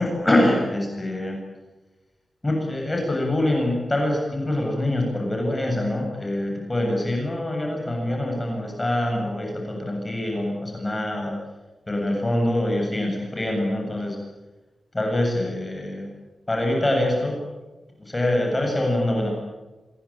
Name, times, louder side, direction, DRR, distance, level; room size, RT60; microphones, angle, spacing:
voice 1, 0.0-1.4 2.4-11.3 11.9-14.2 14.9-16.1 16.5-17.4 18.0-19.3, left 1 dB, 20° left, 1 dB, 7.9 m, -24 dB
27.0 x 22.5 x 9.0 m, 1.2 s
wide cardioid pair, 130°, 0 cm